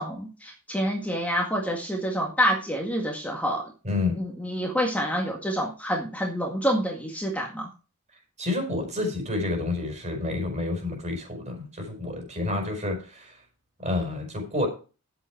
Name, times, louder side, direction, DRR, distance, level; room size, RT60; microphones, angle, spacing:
voice 1, 0.0-3.6 4.2-7.7, equal, 5° left, -1 dB, 2.0 m, -27 dB
voice 2, 3.8-4.2 8.4-13.3 13.8-14.7, left 2 dB, 30° right, 2 dB, 4.8 m, -29 dB
11.5 x 8.1 x 4.6 m, 0.34 s
head